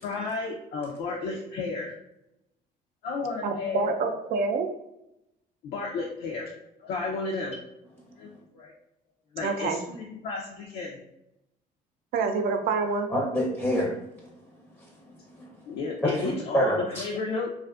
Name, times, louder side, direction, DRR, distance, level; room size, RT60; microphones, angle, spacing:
voice 1, 0.0-1.9 3.0-4.0 5.6-6.5 6.8-7.6 8.2-8.7 9.3-11.0 15.7-17.5, left 4 dB, 70° left, -2 dB, 0.4 m, -32 dB
voice 2, 3.4-4.7 9.4-9.8 12.1-13.1, right 4 dB, 60° right, 5 dB, 0.4 m, -27 dB
voice 3, 13.1-13.9 15.1-15.5 16.0-17.0, equal, 5° left, -3 dB, 0.5 m, -27 dB
2.4 x 2.4 x 2.3 m, 0.85 s
cardioid pair, 110°, 17 cm